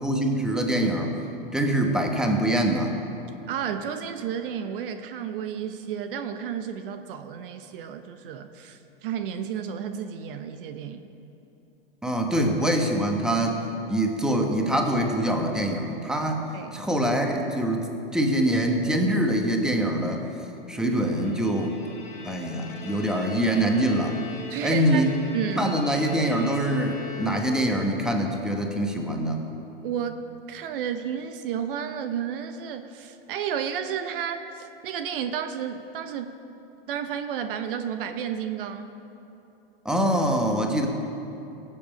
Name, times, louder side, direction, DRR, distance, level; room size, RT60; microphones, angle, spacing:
voice 1, 0.0-1.2 1.5-2.9 12.0-13.6 13.9-16.4 16.7-20.2 20.7-21.8 22.2-24.2 24.6-25.1 25.5-29.4 39.8-40.9, right 1 dB, ahead, 2 dB, 1.4 m, -24 dB
voice 2, 3.5-11.1 16.5-16.9 24.5-25.1 25.3-25.7 29.8-36.3 36.9-38.9, right 8 dB, 65° right, 9 dB, 0.9 m, -32 dB
Bowed string instrument, 20.9-27.9, left 3 dB, 25° left, 2.9 m, -41 dB
18.5 x 7.7 x 5.2 m, 2.8 s
hypercardioid pair, 105°, 30 cm